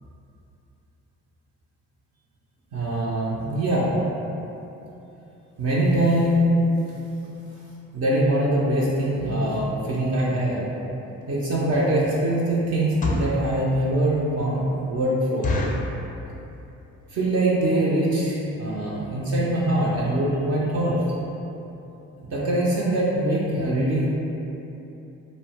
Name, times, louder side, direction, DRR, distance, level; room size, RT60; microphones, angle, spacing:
voice 1, 2.7-3.9 5.6-6.6 7.9-10.7 11.3-15.5 17.1-21.0 22.3-24.1, right 1 dB, 50° right, -6 dB, 0.5 m, -23 dB
sound 1, 11.2-11.3 11.8-12.1 12.8-13.4 14.0-14.1 14.4-14.5 14.8-14.9 15.4-15.9 16.5-16.8 17.1-17.2 17.4-17.7 18.2-18.3 18.5-18.7 19.1-19.2 19.4-19.5, left 2 dB, 25° left, 0.4 m, -27 dB
2.6 x 2.1 x 2.8 m, 2.9 s
cardioid pair, 75°, 32 cm